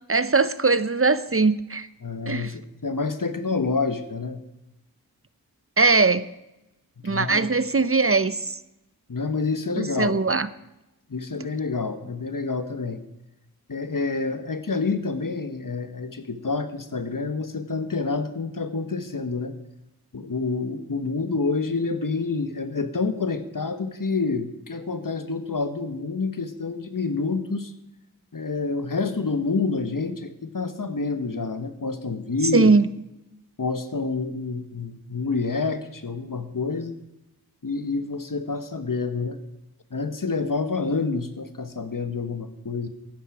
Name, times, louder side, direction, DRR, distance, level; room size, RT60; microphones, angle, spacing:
voice 1, 0.1-1.9 2.3-2.5 5.8-6.2 7.0-8.5 9.8-10.5 32.5-32.9, right 4 dB, 35° right, 15 dB, 0.7 m, -20 dB
voice 2, 2.0-4.4 7.0-7.5 9.1-10.2 11.1-13.0 13.7-19.5 20.1-27.7 28.3-32.7 33.6-37.0 37.6-39.4 39.9-42.9, left 4 dB, 60° left, 10 dB, 1.3 m, -28 dB
13.5 x 10.5 x 4.9 m, 0.91 s
wide cardioid pair, 40°, 37 cm